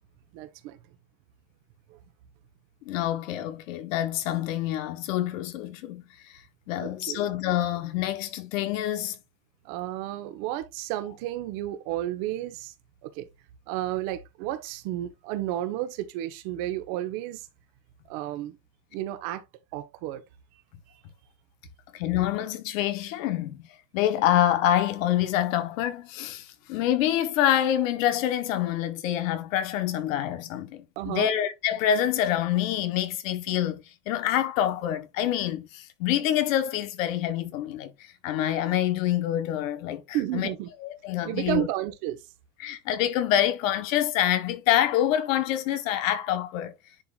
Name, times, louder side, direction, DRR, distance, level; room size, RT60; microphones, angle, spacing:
voice 1, 0.3-0.8 6.8-7.2 9.6-12.7 13.0-13.3 13.7-17.5 18.1-18.5 18.9-19.4 19.7-20.2 31.0-31.3 40.1-40.7 41.2-42.2, right 14 dB, 65° right, 1.3 m, -32 dB
voice 2, 2.8-6.0 6.7-9.2 21.9-23.7 23.9-40.5 40.8-41.7 42.6-46.7, left 11 dB, 85° left, 1.2 m, -26 dB
10.5 x 3.8 x 2.5 m
supercardioid pair, 140°, 38 cm